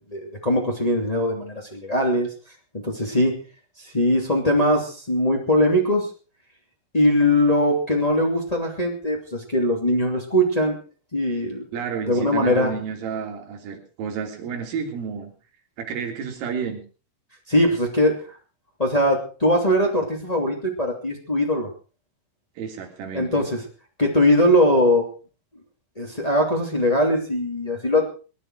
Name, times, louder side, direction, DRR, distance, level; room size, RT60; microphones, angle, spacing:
voice 1, 0.1-2.3 2.8-3.3 3.8-6.1 6.9-10.8 11.1-11.7 12.1-12.7 17.5-18.2 18.8-21.7 23.1-23.6 24.0-25.0 25.9-28.0, left 1 dB, 20° left, -1 dB, 1.0 m, -21 dB
voice 2, 11.7-15.3 15.8-16.8 22.6-23.5, right 6 dB, 75° right, 2 dB, 5.7 m, -31 dB
22.0 x 11.5 x 4.8 m, 0.37 s
omnidirectional pair, 6.0 m